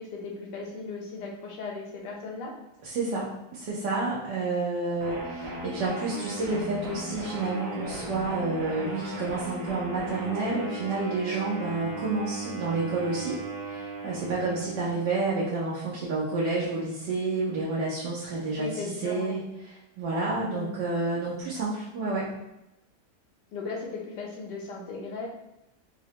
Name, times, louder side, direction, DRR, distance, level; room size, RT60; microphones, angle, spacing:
voice 1, 0.0-2.5 18.6-19.3 20.5-20.7 23.5-25.3, left 4 dB, 85° left, -1 dB, 1.4 m, -37 dB
voice 2, 2.8-22.3, right 3 dB, 85° right, -7 dB, 1.4 m, -30 dB
sound 1, 5.0-15.2, right 2 dB, 55° right, 1.8 m, -37 dB
4.8 x 2.1 x 2.8 m, 0.89 s
omnidirectional pair, 1.8 m